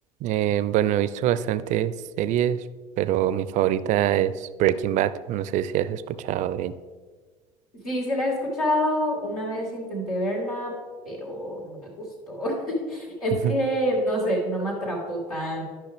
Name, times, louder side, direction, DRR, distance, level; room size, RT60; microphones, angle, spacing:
voice 1, 0.2-2.6 3.0-6.7 13.4-13.5, right 11 dB, 40° right, 15 dB, 0.4 m, -24 dB
voice 2, 7.8-10.8 11.0-15.7, equal, 85° left, -5 dB, 2.5 m, -27 dB
12.0 x 5.7 x 3.4 m, 1.5 s
figure-of-eight pair, 65°, 19 cm